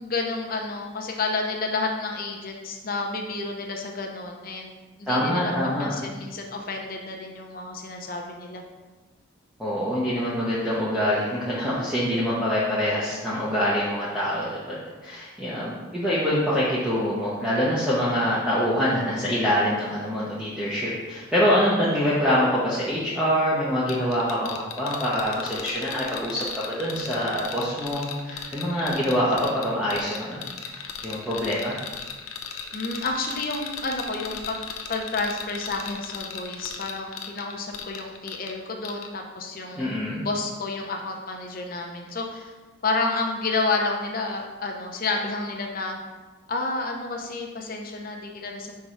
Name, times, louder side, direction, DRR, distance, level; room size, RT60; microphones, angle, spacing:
voice 1, 0.0-4.7 5.0-5.5 5.8-8.6 32.7-34.6 34.9-42.5 42.8-46.0 46.5-48.7, left 3 dB, 45° left, 2 dB, 0.7 m, -30 dB
voice 2, 5.1-6.0 9.6-14.8 15.0-24.5 24.8-31.7 39.8-40.2, equal, 5° right, -9 dB, 0.8 m, -25 dB
sound 1, 23.9-38.6 38.8-39.1, left 7 dB, 80° left, 0.6 m, -37 dB
4.7 x 3.8 x 5.6 m, 1.3 s
head